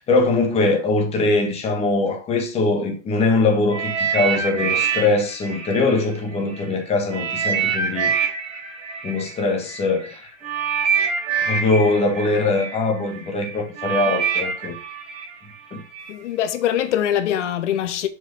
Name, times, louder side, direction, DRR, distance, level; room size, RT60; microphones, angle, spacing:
voice 1, 0.0-8.1 9.0-10.3 11.5-14.8 15.7-15.8, left 3 dB, 20° left, 1.6 m, -21 dB
sound 1, 3.7-6.6 7.1-16.1 16.8-16.9, right 6 dB, 20° right, 4.0 m, -26 dB
voice 2, 16.1-18.1, left 10 dB, 85° left, 1.1 m, -23 dB
7.0 x 4.9 x 5.5 m
supercardioid pair, 165°, 35 cm